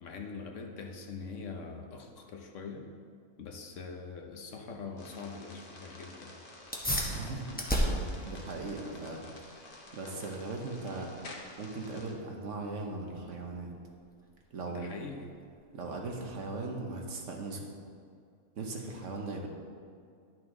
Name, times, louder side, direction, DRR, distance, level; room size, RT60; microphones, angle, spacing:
voice 1, 0.0-2.9 3.4-6.4 14.7-15.3, left 4 dB, 65° left, 3 dB, 1.1 m, -43 dB
sound 1, 5.0-12.1, left 2 dB, 45° left, 1.1 m, -50 dB
sound 2, 6.7-16.7, equal, 10° left, 0.8 m, -38 dB
voice 2, 7.0-9.2 9.5-11.1 11.6-13.7 14.5-14.9 15.7-17.7 18.6-19.5, right 3 dB, 60° right, 1 dB, 1.3 m, -39 dB
11.0 x 6.1 x 3.7 m, 2.3 s
omnidirectional pair, 1.5 m